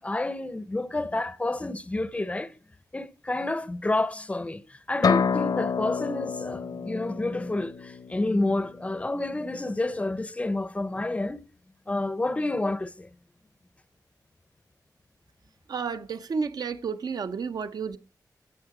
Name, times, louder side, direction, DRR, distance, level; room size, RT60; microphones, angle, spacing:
voice 1, 0.0-2.5 2.9-11.4 11.9-13.1, left 2 dB, 20° left, 0.6 m, -29 dB
sound 1, 5.0-8.8, left 6 dB, 65° left, 0.6 m, -28 dB
voice 2, 15.7-18.0, right 5 dB, 65° right, 0.7 m, -31 dB
16.0 x 6.5 x 4.8 m
wide cardioid pair, 170°, 7 cm